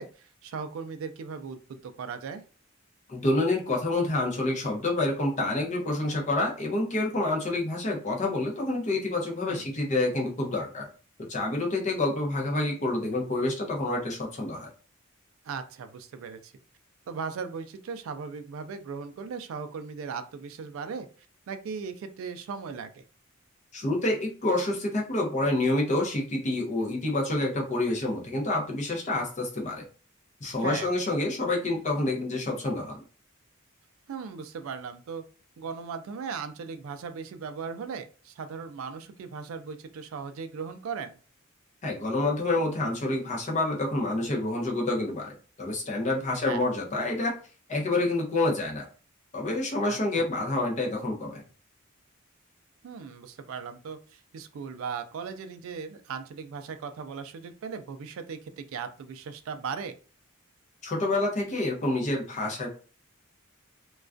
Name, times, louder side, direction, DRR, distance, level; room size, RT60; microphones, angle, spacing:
voice 1, 0.0-2.4 9.5-9.6 15.4-16.5 17.1-21.1 21.5-23.0 30.6-30.9 34.1-35.2 35.6-41.2 46.3-46.6 49.9-50.2 52.8-59.9, right 5 dB, 70° right, 10 dB, 0.3 m, -38 dB
voice 2, 3.1-10.9 11.2-14.7 23.7-29.9 30.4-33.0 41.8-47.3 47.7-48.9 49.3-51.4 60.8-62.7, left 2 dB, 35° left, 0 dB, 0.6 m, -28 dB
2.3 x 2.2 x 2.4 m, 0.37 s
head